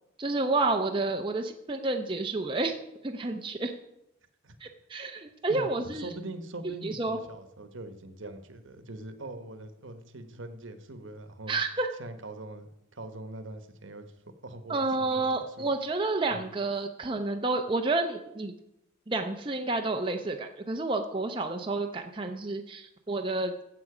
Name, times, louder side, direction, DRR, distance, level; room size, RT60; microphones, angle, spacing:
voice 1, 0.2-2.8 3.0-3.7 4.6-6.1 6.8-7.2 11.5-11.9 14.7-18.5 19.1-23.5, right 3 dB, 25° right, 3 dB, 0.7 m, -30 dB
voice 2, 5.5-11.6 12.0-15.7 16.3-16.4, right 2 dB, 70° right, 8 dB, 1.2 m, -43 dB
15.5 x 7.7 x 4.9 m, 0.83 s
head